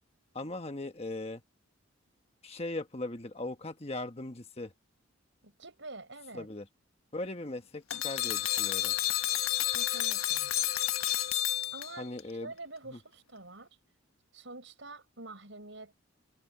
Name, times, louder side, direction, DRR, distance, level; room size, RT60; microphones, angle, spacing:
voice 1, 0.3-1.4 2.4-4.7 6.3-6.7 7.1-8.9 12.0-12.5 12.9-13.0, left 2 dB, 30° left, 1.2 m, -39 dB
voice 2, 5.4-6.5 9.7-10.5 11.7-13.7 14.3-16.1, right 2 dB, 60° right, 5.8 m, -47 dB
sound 1, 7.9-12.2, left 13 dB, 85° left, 1.5 m, -30 dB
head